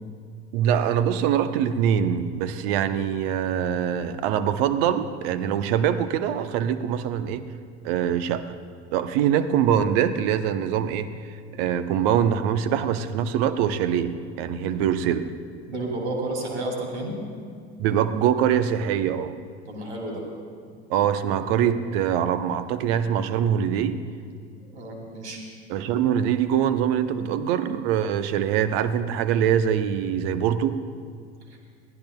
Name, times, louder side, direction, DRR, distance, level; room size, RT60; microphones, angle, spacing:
voice 1, 0.5-7.4 7.8-8.5 8.9-11.1 11.5-15.3 17.8-19.3 20.9-24.0 25.7-30.8, right 9 dB, 60° right, 11 dB, 0.9 m, -23 dB
voice 2, 15.7-17.2 19.7-20.2 24.6-25.4 31.5-31.6, right 1 dB, 85° right, -1 dB, 2.8 m, -31 dB
22.0 x 15.0 x 2.3 m, 2.1 s
hypercardioid pair, 75°, 33 cm